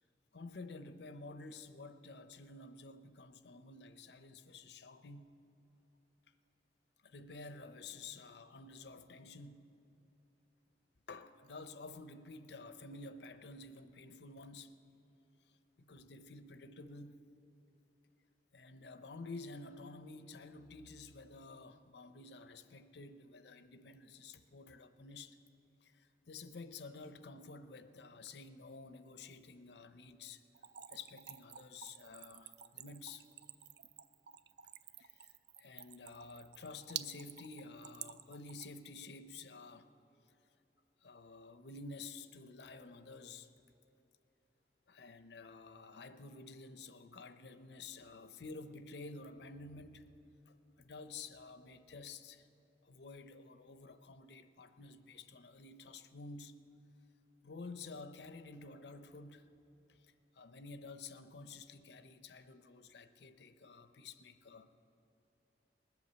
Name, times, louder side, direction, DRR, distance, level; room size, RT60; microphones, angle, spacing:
voice 1, 0.3-5.3 7.0-9.7 11.1-14.7 15.5-17.2 18.5-25.4 25.8-30.4 30.9-33.3 35.0-39.9 40.3-40.4 41.0-43.5 44.9-50.1 50.5-52.5 52.8-56.6 57.4-59.5 59.9-64.7, left 3 dB, 80° left, 0.7 m, -51 dB
Splash splatter / Trickle dribble, 30.5-38.9, right 11 dB, 65° right, 0.4 m, -50 dB
20.5 x 8.2 x 6.8 m
head